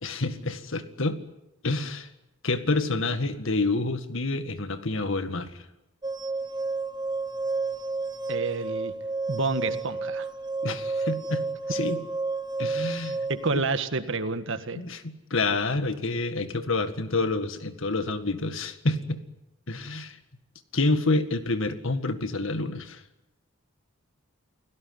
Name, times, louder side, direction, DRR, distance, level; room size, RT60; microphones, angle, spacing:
voice 1, 0.0-1.2 1.6-2.1 2.4-5.6 10.6-11.4 11.7-12.0 12.6-13.2 13.5-13.6 14.7-19.2 19.7-20.2 20.7-23.0, left 2 dB, 65° left, 9 dB, 1.9 m, -28 dB
sound 1, 6.0-13.5, right 3 dB, 20° right, 0.9 m, -31 dB
voice 2, 8.3-8.9 9.3-10.3 13.3-14.8, right 3 dB, 65° right, 9 dB, 1.8 m, -29 dB
29.5 x 17.5 x 9.6 m, 0.94 s
head